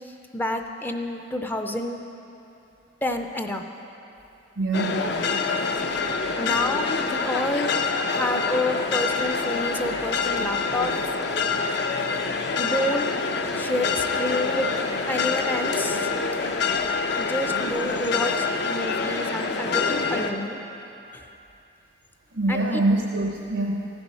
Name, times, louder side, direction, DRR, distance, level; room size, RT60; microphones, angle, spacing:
voice 1, 0.1-2.0 3.0-3.6 6.4-11.2 12.6-13.1 13.5-14.8 15.1-16.1 17.2-20.6 21.1-21.3 22.5-22.8, left 1 dB, 10° left, 5 dB, 0.4 m, -29 dB
voice 2, 4.6-5.1 22.3-23.9, right 2 dB, 85° right, -1 dB, 0.8 m, -24 dB
sound 1, 4.7-20.3, left 4 dB, 60° left, 0.6 m, -26 dB
15.0 x 7.0 x 5.5 m, 2.8 s
head